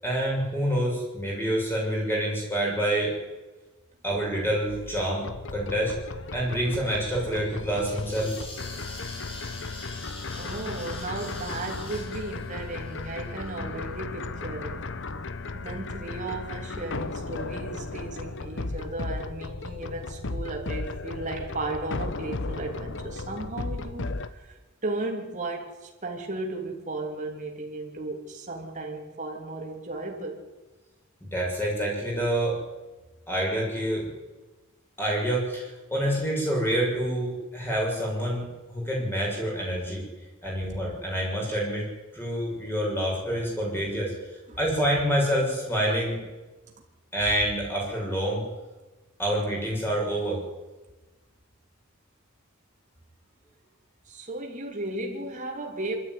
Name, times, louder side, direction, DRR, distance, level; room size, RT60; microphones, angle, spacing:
voice 1, 0.0-3.2 4.0-5.9 6.3-8.3 31.2-32.6 33.3-34.1 35.0-40.0 40.4-41.9 42.1-44.1 44.6-46.2 47.1-48.4 49.2-50.4, right 1 dB, 10° left, 7.4 m, -27 dB
sound 1, 4.7-24.3, left 3 dB, 55° left, 1.0 m, -35 dB
sound 2, 7.8-13.6, left 2 dB, 25° left, 4.4 m, -44 dB
voice 2, 10.4-14.9 15.5-30.4 44.5-44.6 54.1-55.9, right 2 dB, 35° right, 3.3 m, -35 dB
24.5 x 13.0 x 9.6 m
head